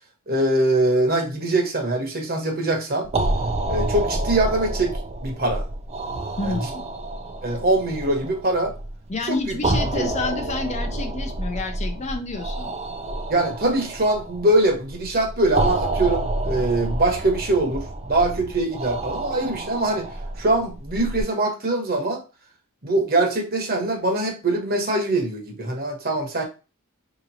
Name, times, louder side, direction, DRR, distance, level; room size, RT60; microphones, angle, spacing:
voice 1, 0.3-3.1 3.7-4.9 5.2-5.7 6.4-6.6 7.4-8.7 9.3-9.6 10.0-10.1 13.3-17.8 18.1-20.1 20.4-22.2 22.8-26.4, right 2 dB, 45° right, 3 dB, 1.1 m, -23 dB
sound 1, 3.0-21.2, right 2 dB, 30° right, 0.5 m, -29 dB
voice 2, 6.4-6.8 9.1-12.7, left 3 dB, 30° left, 5 dB, 0.5 m, -29 dB
5.0 x 3.0 x 2.7 m, 0.31 s
head